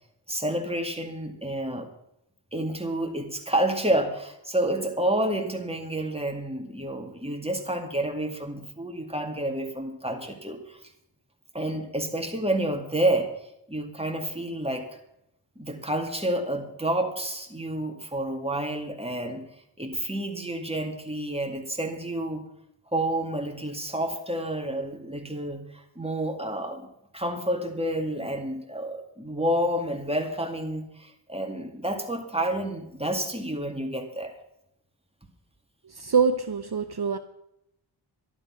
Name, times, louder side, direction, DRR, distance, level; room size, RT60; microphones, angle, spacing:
voice 1, 0.3-1.9 2.5-10.8 11.5-13.3 13.7-14.9 15.6-19.4 19.8-22.4 22.9-26.9 27.1-34.3, right 1 dB, 10° right, 3 dB, 2.2 m, -29 dB
voice 2, 35.9-37.2, right 5 dB, 55° right, 8 dB, 0.8 m, -24 dB
12.0 x 11.0 x 5.9 m, 0.80 s
wide cardioid pair, 45°, 47 cm